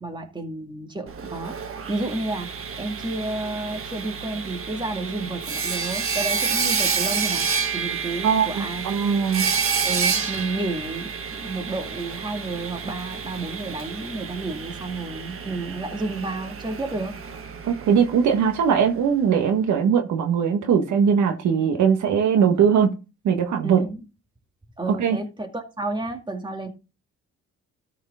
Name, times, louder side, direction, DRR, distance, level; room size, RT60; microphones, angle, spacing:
voice 1, 0.0-1.5 1.9-2.5 2.8-7.5 7.7-9.0 9.8-17.1 23.6-24.0 24.8-26.7, right 2 dB, 15° right, 2.1 m, -31 dB
Sawing, 1.1-18.9, right 5 dB, 45° right, 1.4 m, -29 dB
voice 2, 8.2-9.5 17.6-22.9 23.2-23.8 24.9-25.2, right 7 dB, 70° right, 1.5 m, -20 dB
13.0 x 5.0 x 3.7 m
cardioid pair, 90°, 30 cm